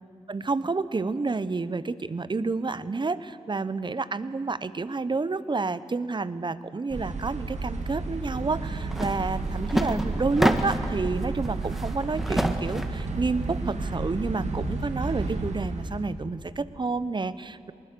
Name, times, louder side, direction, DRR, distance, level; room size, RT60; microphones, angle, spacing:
voice 1, 0.3-17.7, right 3 dB, 40° right, 15 dB, 0.8 m, -29 dB
sound 1, 6.9-16.1, right 3 dB, 65° right, 2.0 m, -32 dB
sound 2, 8.9-9.1 9.5-11.0 11.4-13.0, equal, ahead, 1.6 m, -27 dB
20.5 x 20.0 x 6.8 m, 2.3 s
cardioid pair, 45°, 13 cm